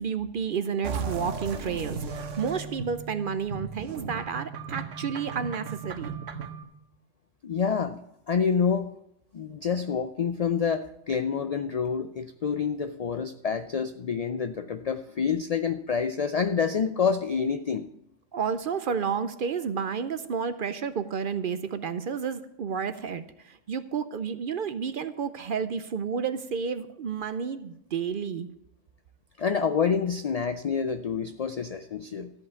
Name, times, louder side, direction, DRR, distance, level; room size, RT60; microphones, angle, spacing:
voice 1, 0.0-6.1 18.3-28.5, right 6 dB, 55° right, 12 dB, 0.7 m, -31 dB
sound 1, 0.8-6.6, right 5 dB, 80° right, 1.3 m, -36 dB
voice 2, 7.4-8.0 8.3-8.9 9.3-17.9 29.4-32.3, left 6 dB, 75° left, 10 dB, 0.3 m, -27 dB
13.5 x 5.4 x 8.1 m, 0.80 s
omnidirectional pair, 1.3 m